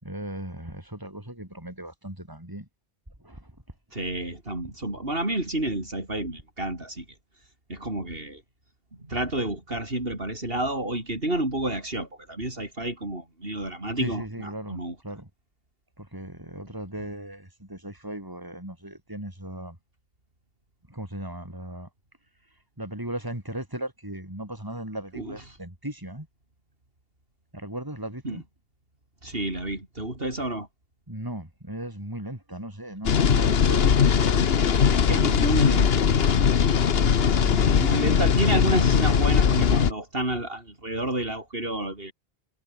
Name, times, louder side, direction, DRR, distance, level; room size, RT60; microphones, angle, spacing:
voice 1, 0.0-2.7 3.2-3.5 14.0-15.3 16.0-19.8 20.9-21.9 22.8-26.3 27.5-28.4 31.1-35.2 36.8-38.3, right 1 dB, 20° right, 5.2 m, -37 dB
voice 2, 3.9-7.1 7.7-8.4 9.0-15.0 25.1-25.4 28.2-28.4 29.2-30.7 34.6-34.7 35.0-36.1 37.7-42.1, right 1 dB, 65° right, 5.9 m, -30 dB
sound 1, 33.0-39.9, left 7 dB, 70° left, 1.3 m, -20 dB
omnidirectional pair, 1.0 m